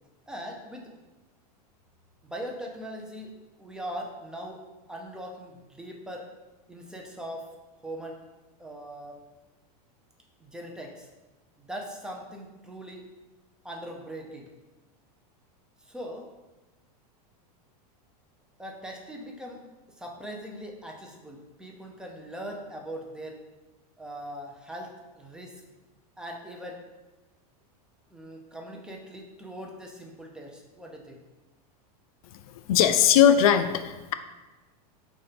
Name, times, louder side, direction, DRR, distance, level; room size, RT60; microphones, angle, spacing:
voice 1, 0.3-0.9 2.2-3.3 3.6-4.6 4.9-6.3 6.7-7.5 7.8-8.2 8.6-9.2 10.4-11.1 11.6-13.0 13.6-14.5 15.8-16.2 18.6-19.6 20.0-23.4 24.0-25.5 26.2-26.8 28.1-31.2, equal, 5° right, 0 dB, 0.7 m, -40 dB
voice 2, 32.5-34.1, left 9 dB, 60° left, 10 dB, 0.4 m, -20 dB
4.7 x 4.3 x 5.1 m, 1.1 s
supercardioid pair, 150°, 20 cm